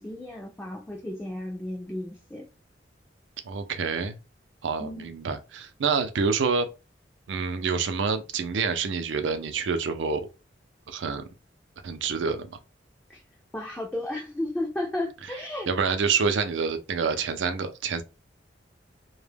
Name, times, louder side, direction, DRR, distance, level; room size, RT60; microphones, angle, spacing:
voice 1, 0.0-2.5 4.8-5.1 13.1-13.2 13.5-15.7, left 1 dB, 10° left, 0.3 m, -33 dB
voice 2, 3.4-4.1 4.6-6.7 7.3-10.3 10.9-11.3 11.8-12.6 15.7-18.0, right 5 dB, 85° right, 0.4 m, -27 dB
2.2 x 2.0 x 3.3 m
head